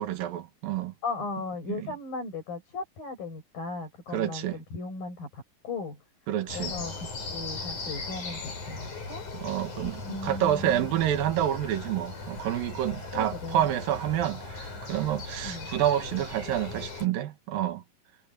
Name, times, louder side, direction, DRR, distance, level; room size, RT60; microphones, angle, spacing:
voice 1, 0.0-0.9 4.1-4.6 6.3-6.7 9.4-17.8, right 11 dB, 80° right, 3.2 m, -28 dB
voice 2, 1.0-6.0 6.5-9.3 10.0-11.0 13.1-13.7 15.4-15.7, left 3 dB, 85° left, 8.8 m, -37 dB
sound 1, 6.5-17.1, left 3 dB, 60° left, 8.3 m, -38 dB
omnidirectional pair, 4.0 m